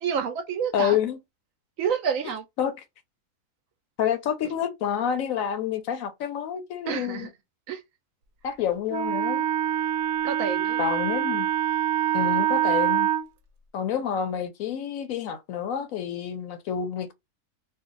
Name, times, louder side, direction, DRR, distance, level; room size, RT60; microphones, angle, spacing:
voice 1, 0.0-1.0 1.8-2.4 6.9-7.3 7.7-7.8 10.2-11.0, right 7 dB, 70° right, 0.9 m, -29 dB
voice 2, 0.7-1.2 2.6-2.7 4.0-7.3 8.4-9.5 10.8-11.5 12.1-13.1 13.7-17.1, left 9 dB, 70° left, 0.9 m, -28 dB
Wind instrument woodwind instrument, 8.9-13.3, right 11 dB, 90° right, 1.2 m, -25 dB
2.6 x 2.3 x 3.7 m
omnidirectional pair, 1.6 m